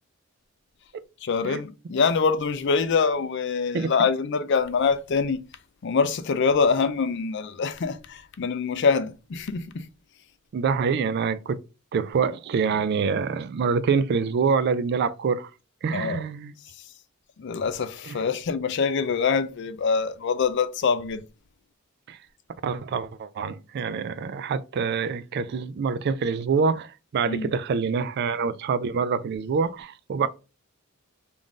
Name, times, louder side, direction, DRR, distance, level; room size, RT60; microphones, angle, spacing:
voice 1, 1.2-5.5 5.8-9.9 15.9-16.2 17.4-21.2 27.3-27.5, left 5 dB, 55° left, 0.4 m, -24 dB
voice 2, 10.5-11.6 11.9-15.5 15.8-16.5 18.1-18.2 22.1-22.2 22.6-30.3, right 5 dB, 50° right, 0.3 m, -26 dB
3.6 x 2.6 x 3.5 m
head